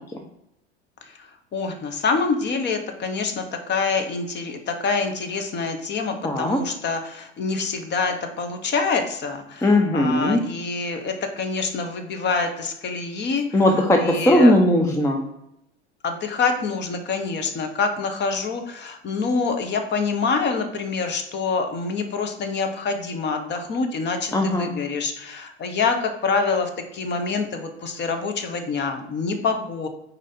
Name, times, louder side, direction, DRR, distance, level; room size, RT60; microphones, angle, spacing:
voice 1, 1.5-3.4 3.7-4.6 4.8-7.0 7.4-9.4 9.9-13.4 14.0-14.5 16.0-26.0 26.2-26.7 27.0-29.9, left 4 dB, 30° left, 6 dB, 0.8 m, -26 dB
voice 2, 6.2-6.6 9.6-10.4 13.5-15.2 24.3-24.7, left 1 dB, 10° left, 3 dB, 0.4 m, -18 dB
4.7 x 2.7 x 4.1 m, 0.83 s
hypercardioid pair, 80°, 33 cm